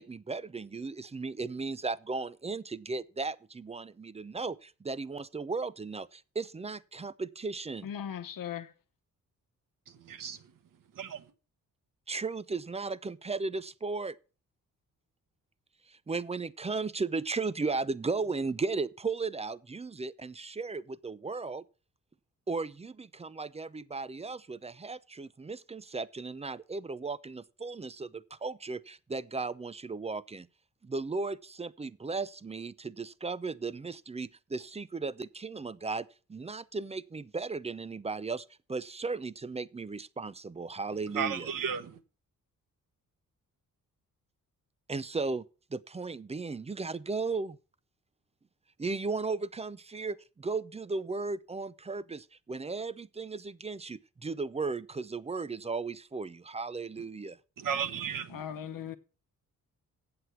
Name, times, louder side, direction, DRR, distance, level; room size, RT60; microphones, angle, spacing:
voice 1, 0.0-7.9 12.1-14.2 15.9-21.6 22.5-30.5 30.8-41.5 44.9-45.5 45.7-47.6 48.8-57.4, right 4 dB, 20° right, 0.4 m, -36 dB
voice 2, 7.8-8.7 58.3-59.0, left 9 dB, 75° left, 1.0 m, -38 dB
voice 3, 9.9-10.4 10.9-11.2 41.1-42.0 57.6-58.4 58.8-59.0, right 7 dB, 70° right, 1.2 m, -34 dB
7.9 x 7.8 x 5.8 m
cardioid pair, 95°, 34 cm